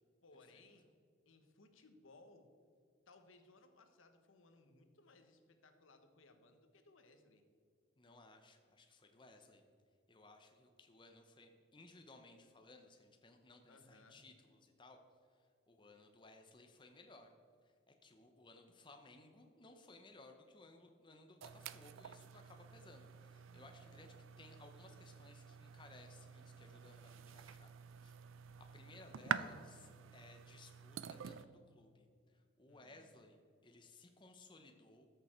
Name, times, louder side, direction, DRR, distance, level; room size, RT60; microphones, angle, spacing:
voice 1, 0.2-0.9 1.2-2.5 3.1-7.4 13.7-14.2 32.7-33.1, left 2 dB, 80° left, 7 dB, 1.1 m, -64 dB
voice 2, 8.0-9.6 10.1-15.0 15.3-17.3 17.6-27.7 28.0-28.2 28.6-35.1, left 2 dB, 25° left, 4 dB, 0.7 m, -61 dB
sound 1, 21.4-31.5, right 7 dB, 80° right, 0.4 m, -48 dB
13.0 x 6.8 x 4.4 m, 2.3 s
head